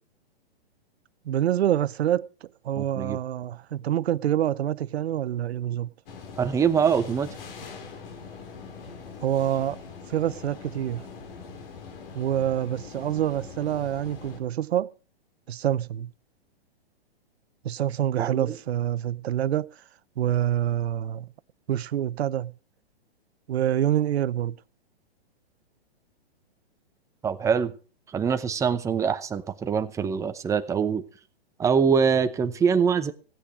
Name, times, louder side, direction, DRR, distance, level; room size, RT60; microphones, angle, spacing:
voice 1, 1.2-5.9 9.2-9.8 10.1-11.1 12.1-14.9 15.5-16.1 17.6-19.7 20.2-21.3 21.7-22.5 23.5-24.6, right 11 dB, 75° right, 0.7 m, -26 dB
voice 2, 2.8-3.2 6.4-7.3 18.3-18.5 27.2-27.7 28.1-31.0 31.6-33.1, right 6 dB, 10° right, 0.7 m, -24 dB
sound 1, 6.1-14.4, left 5 dB, 60° left, 3.7 m, -42 dB
16.5 x 8.9 x 5.1 m
hypercardioid pair, 140°, 32 cm